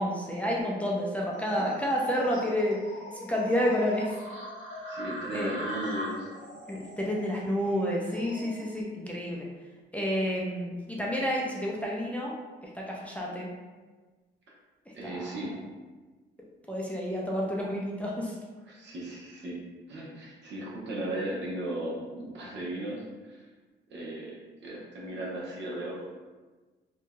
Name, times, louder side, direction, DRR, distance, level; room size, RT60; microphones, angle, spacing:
voice 1, 0.0-2.8 3.1-4.1 5.3-5.6 6.7-9.5 9.9-12.3 12.6-13.5 15.0-15.3 16.7-18.4, equal, 5° left, -4 dB, 0.5 m, -30 dB
sound 1, 1.3-8.8, equal, 40° left, 1.5 m, -41 dB
voice 2, 4.9-6.5 14.9-15.5 18.7-19.6 19.9-23.5 23.9-26.1, right 1 dB, 65° right, -4 dB, 0.9 m, -36 dB
2.8 x 2.7 x 2.2 m, 1.3 s
cardioid pair, 90°, 20 cm